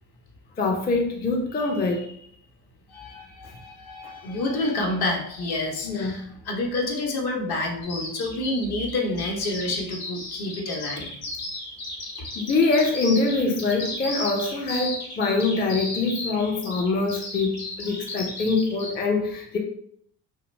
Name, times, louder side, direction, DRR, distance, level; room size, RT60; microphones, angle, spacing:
voice 1, 0.6-2.3 4.0-4.1 5.8-6.3 12.3-19.6, left 3 dB, 20° left, 0 dB, 0.4 m, -24 dB
voice 2, 2.9-11.1, left 2 dB, 55° left, 1 dB, 0.9 m, -28 dB
Bird vocalization bird call bird song, 7.8-18.9, left 2 dB, 90° left, 0.8 m, -35 dB
2.5 x 2.0 x 3.1 m, 0.69 s
hypercardioid pair, 55°, 47 cm